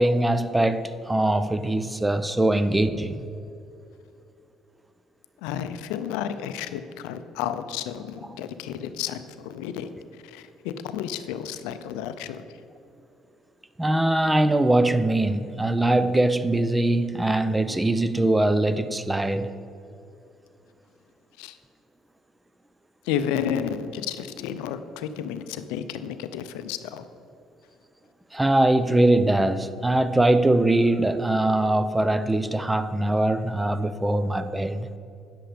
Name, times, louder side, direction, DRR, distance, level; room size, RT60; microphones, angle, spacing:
voice 1, 0.0-3.2 13.8-19.5 28.3-34.9, right 1 dB, 10° right, 0.5 m, -22 dB
voice 2, 5.4-9.9 10.2-12.4 21.4-21.6 23.1-27.1, left 9 dB, 90° left, 0.4 m, -32 dB
9.0 x 7.7 x 5.0 m
supercardioid pair, 75°, 0 cm